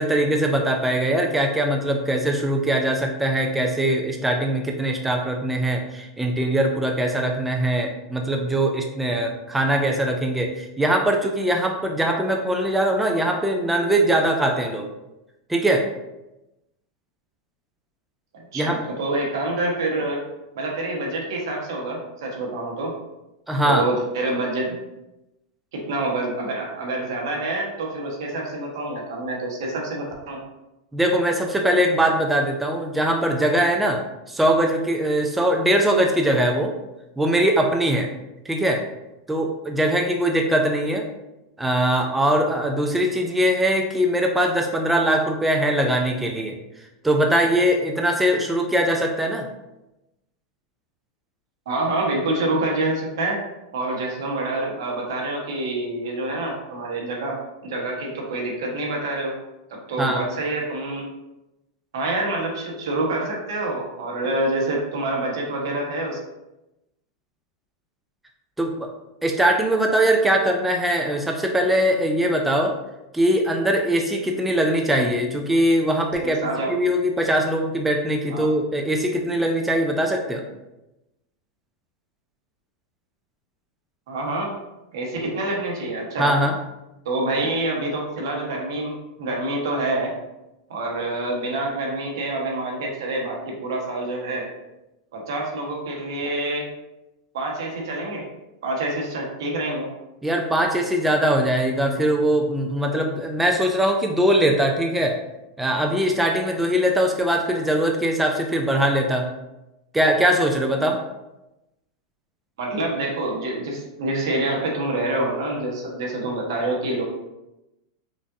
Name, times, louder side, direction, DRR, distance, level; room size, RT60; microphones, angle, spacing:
voice 1, 0.0-14.9 15.5-15.9 18.5-18.8 23.5-23.9 30.9-34.0 34.3-36.7 37.2-38.1 38.5-38.8 39.3-41.1 41.6-46.5 47.0-49.5 60.0-60.2 68.6-68.9 69.2-72.7 73.1-76.4 76.7-80.4 86.2-86.6 100.2-105.2 105.6-109.3 109.9-111.0, right 1 dB, 5° right, 2 dB, 0.3 m, -21 dB
voice 2, 18.3-20.2 20.5-22.9 23.6-24.8 25.7-30.4 51.7-53.4 53.7-57.4 57.6-59.4 59.7-61.1 61.9-66.2 76.2-76.7 78.3-78.5 84.1-84.5 84.9-86.3 87.0-90.1 90.7-94.5 95.1-96.7 97.3-98.3 98.6-99.9 112.6-117.0, right 2 dB, 80° right, -1 dB, 1.2 m, -27 dB
5.0 x 2.5 x 2.6 m, 0.94 s
supercardioid pair, 155°, 2 cm